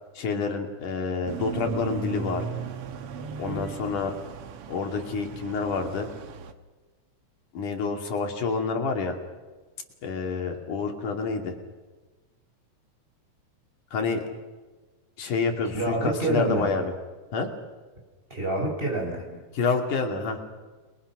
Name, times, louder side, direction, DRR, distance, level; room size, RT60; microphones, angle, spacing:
voice 1, 0.2-2.4 3.4-4.1 4.7-6.1 7.5-9.2 10.0-11.5 13.9-14.2 15.2-16.9 17.3-17.5 19.5-20.4, left 4 dB, 80° left, 3 dB, 4.2 m, -28 dB
sound 1, 1.3-6.5, right 5 dB, 55° right, 1.9 m, -36 dB
voice 2, 15.7-16.8 18.3-19.4, right 1 dB, 15° right, 1 dB, 6.1 m, -28 dB
30.0 x 22.5 x 6.1 m, 1.3 s
omnidirectional pair, 3.5 m